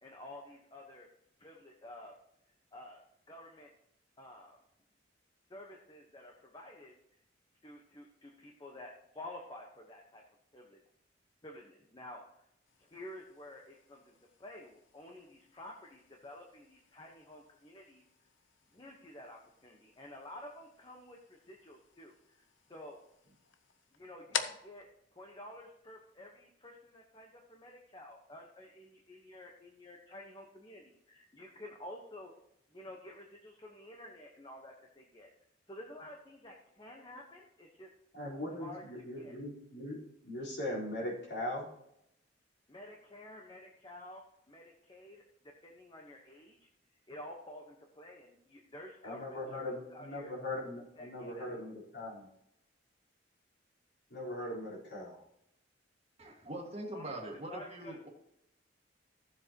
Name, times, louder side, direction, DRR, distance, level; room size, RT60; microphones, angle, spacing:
voice 1, 0.0-1.1 1.4-2.1 2.7-3.0 3.3-3.7 4.2-4.6 5.5-7.2 7.6-10.2 10.5-10.8 11.4-12.2 12.8-18.0 18.7-22.4 22.7-23.0 23.9-24.8 25.1-32.3 32.7-35.3 35.7-37.9 38.6-38.8 39.2-39.3 42.7-46.7 47.1-50.3 51.0-51.6 56.9-57.2 57.5-58.1, left 1 dB, 25° left, 0 dB, 1.1 m, -51 dB
sound 1, 12.6-26.3, left 7 dB, 85° left, 0.8 m, -48 dB
voice 2, 38.1-40.0 40.2-41.7 49.0-52.3 54.1-55.2, left 1 dB, 60° left, -4 dB, 4.1 m, -40 dB
voice 3, 56.2-58.1, right 1 dB, 35° right, 0 dB, 1.9 m, -42 dB
15.5 x 7.4 x 3.0 m, 0.78 s
head